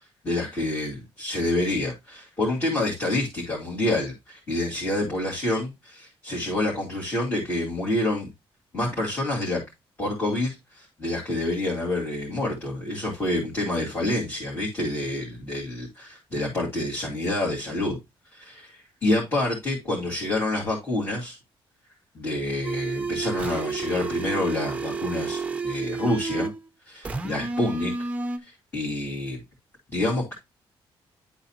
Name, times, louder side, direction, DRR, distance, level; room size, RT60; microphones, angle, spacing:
voice 1, 0.2-8.3 8.7-9.6 10.0-18.0 18.3-21.4 22.1-26.5 26.9-27.9 28.4-29.4 29.9-30.3, left 1 dB, 25° left, 2.6 m, -28 dB
sound 1, 22.6-26.6 27.0-28.4, right 4 dB, 15° right, 0.7 m, -30 dB
11.0 x 3.9 x 2.8 m
cardioid pair, 180°, 10 cm